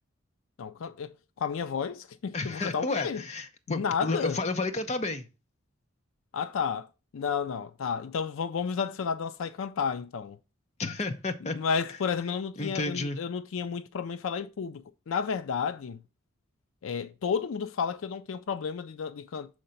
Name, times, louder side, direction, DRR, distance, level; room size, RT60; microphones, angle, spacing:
voice 1, 0.6-3.2 3.7-4.4 6.3-6.9 7.1-10.4 11.5-16.0 16.8-19.5, left 6 dB, 75° left, 0.4 m, -32 dB
voice 2, 2.3-5.3 10.8-11.6 12.6-13.2, left 3 dB, 30° left, 0.7 m, -31 dB
6.4 x 3.9 x 5.6 m
head